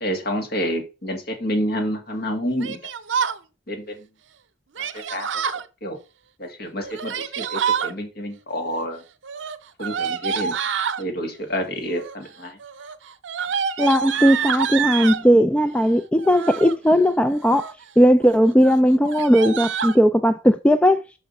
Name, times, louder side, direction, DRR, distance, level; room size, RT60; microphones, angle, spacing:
voice 1, 0.0-2.8 3.7-4.0 4.8-5.4 5.8-6.0 6.4-9.0 9.8-10.6 11.0-12.6, equal, 60° left, 2.0 m, -28 dB
Yell, 2.6-3.4 4.7-5.6 6.8-7.9 9.2-11.0 11.9-12.3 12.6-15.2 16.2-16.8 17.3-17.8 18.2-18.4 18.6-18.7 19.0-20.0, right 7 dB, 90° right, 0.6 m, -27 dB
voice 2, 13.8-21.0, equal, 5° left, 0.3 m, -17 dB
5.8 x 4.8 x 5.3 m
head